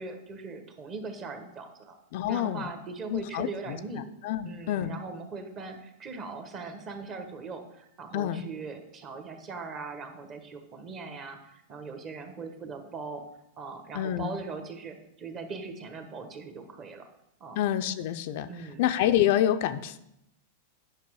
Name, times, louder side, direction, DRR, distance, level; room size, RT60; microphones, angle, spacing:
voice 1, 0.0-2.0 2.3-4.1 4.4-13.2 13.6-17.1 17.4-17.6 18.5-18.8, right 4 dB, 25° right, 6 dB, 1.2 m, -40 dB
voice 2, 2.1-2.7 3.1-3.8 4.2-4.9 8.1-8.4 13.9-14.3 17.6-18.5 18.8-20.0, left 11 dB, 55° left, 10 dB, 0.5 m, -27 dB
9.6 x 5.8 x 4.7 m, 0.81 s
supercardioid pair, 150°, 0 cm